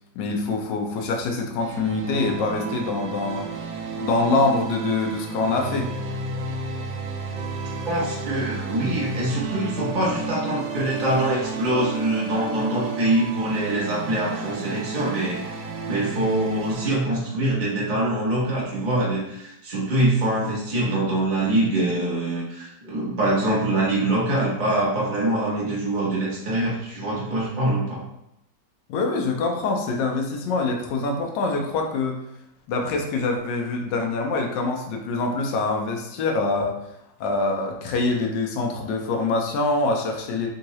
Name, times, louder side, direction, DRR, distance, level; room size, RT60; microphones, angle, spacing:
voice 1, 0.2-3.5 4.0-5.9 28.9-32.2 32.7-36.8 37.2-40.5, left 3 dB, 85° left, 2 dB, 1.3 m, -25 dB
sound 1, 1.6-17.0, right 4 dB, 85° right, 1.2 m, -32 dB
voice 2, 7.8-15.4 15.9-28.0, right 1 dB, 50° right, -6 dB, 0.6 m, -24 dB
3.6 x 2.7 x 3.0 m, 0.80 s
omnidirectional pair, 1.9 m